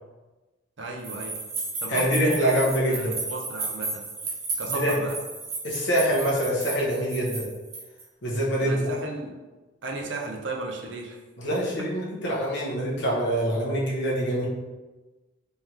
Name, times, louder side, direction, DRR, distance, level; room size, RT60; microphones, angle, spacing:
voice 1, 0.8-1.4 1.8-2.6 2.9-4.0 4.6-5.2 8.6-9.4 9.8-11.2, right 2 dB, 65° right, 0 dB, 0.7 m, -34 dB
sound 1, 1.0-8.0, right 3 dB, 35° right, 0.9 m, -33 dB
voice 2, 1.9-3.2 4.7-5.0 5.6-7.5 8.2-8.9 11.4-14.5, equal, 60° left, -5 dB, 1.0 m, -25 dB
3.6 x 3.4 x 2.9 m, 1.2 s
head